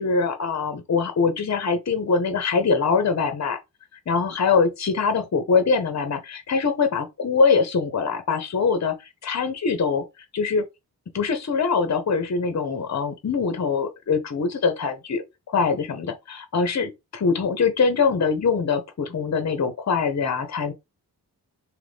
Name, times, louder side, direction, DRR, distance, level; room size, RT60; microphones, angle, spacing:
voice 1, 0.0-3.6 4.1-8.9 9.2-10.0 10.3-10.6 11.1-20.7, left 5 dB, 45° left, 0.8 m, -23 dB
2.9 x 2.5 x 3.4 m
cardioid pair, 45°, 39 cm